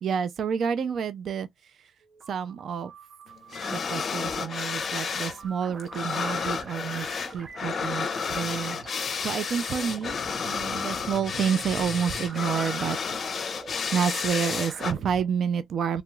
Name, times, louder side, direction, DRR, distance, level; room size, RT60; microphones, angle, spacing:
voice 1, 0.0-1.9 2.3-2.9 3.7-10.2 10.4-13.0 13.4-13.6 13.9-16.0, right 7 dB, 60° right, 0.4 m, -29 dB
sound 1, 2.0-15.3, right 3 dB, 40° right, 0.9 m, -44 dB
sound 2, 3.5-5.4 5.6-14.9, left 6 dB, 50° left, 0.5 m, -31 dB
3.0 x 2.3 x 3.0 m
cardioid pair, 90°, 0 cm